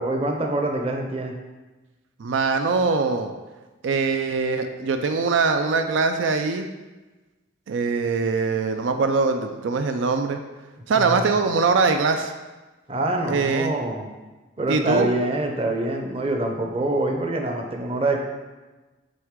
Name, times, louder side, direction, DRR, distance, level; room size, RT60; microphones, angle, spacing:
voice 1, 0.0-1.3 11.0-11.2 12.9-14.1 14.6-18.2, right 2 dB, 30° right, 2 dB, 0.7 m, -25 dB
voice 2, 2.2-3.3 3.8-6.7 7.7-10.4 10.9-12.3 13.3-13.7 14.7-15.1, right 4 dB, 85° right, 6 dB, 0.4 m, -22 dB
7.6 x 3.5 x 3.7 m, 1.2 s
head